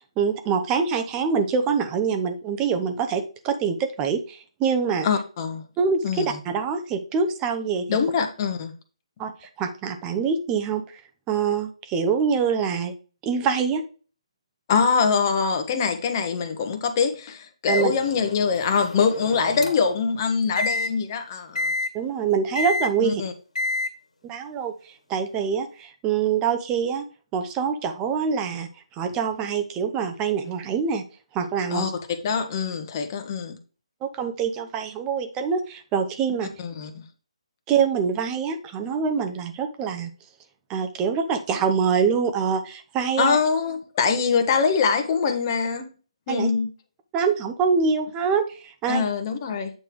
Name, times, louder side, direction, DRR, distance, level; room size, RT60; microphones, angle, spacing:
voice 1, 0.2-5.1 5.8-8.0 9.2-10.8 11.3-12.9 13.2-13.8 17.7-17.9 21.9-23.2 24.2-27.0 27.3-28.7 29.0-31.0 31.3-31.9 34.0-36.5 37.7-40.1 40.7-43.4 46.3-46.5 47.1-49.1, right 6 dB, 15° right, 0.8 m, -25 dB
voice 2, 5.0-5.6 6.0-6.3 7.9-8.7 14.7-21.7 23.0-23.3 31.7-33.6 36.6-37.0 43.2-45.9 46.3-46.7 48.9-49.7, left 5 dB, 30° left, 1.2 m, -24 dB
Microwave oven, 17.7-20.0 20.6-20.9 21.6-21.9 22.6-22.9 23.6-23.9, left 3 dB, 85° left, 1.9 m, -28 dB
8.6 x 3.4 x 4.6 m
hypercardioid pair, 155°, 3 cm